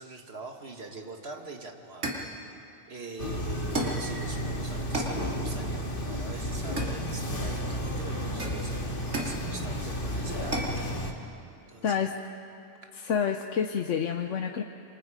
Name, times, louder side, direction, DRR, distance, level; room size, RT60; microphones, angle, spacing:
voice 1, 0.0-2.1 2.9-10.6 11.7-12.1, right 3 dB, 60° right, 3 dB, 2.1 m, -43 dB
sound 1, 1.3-1.5 2.0-2.4 3.7-4.1 4.9-5.2 6.8-7.4 8.4-9.4 10.5-10.8, right 1 dB, 90° right, 2.9 m, -33 dB
sound 2, 3.2-11.1, equal, 45° left, 2.0 m, -32 dB
voice 2, 12.9-14.6, left 7 dB, 85° left, 5 dB, 1.2 m, -28 dB
28.0 x 26.0 x 5.1 m, 2.5 s
omnidirectional pair, 1.2 m